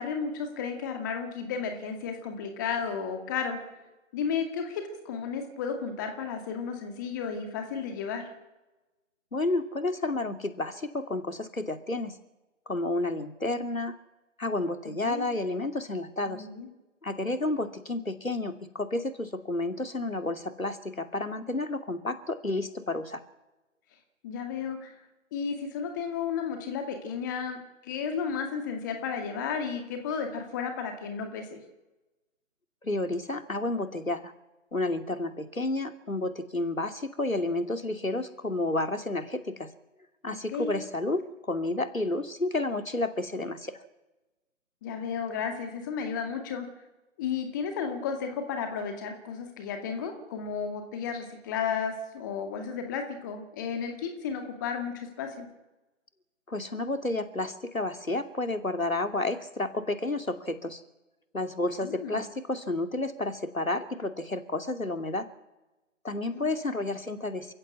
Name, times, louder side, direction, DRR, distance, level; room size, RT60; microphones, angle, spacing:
voice 1, 0.0-3.6 4.1-8.3 15.0-15.3 16.3-16.7 24.2-24.9 25.3-31.6 40.3-40.7 44.8-46.7 47.2-55.5 61.8-62.2 66.3-66.5, left 6 dB, 15° left, 5 dB, 2.1 m, -33 dB
voice 2, 9.3-12.2 12.7-13.9 14.4-16.5 17.0-23.2 32.8-34.3 34.7-39.7 40.2-43.8 56.5-60.8 61.3-65.3 66.0-67.5, left 2 dB, 85° left, 8 dB, 2.7 m, -31 dB
28.5 x 15.0 x 8.5 m, 1.0 s
figure-of-eight pair, 150°, 40 cm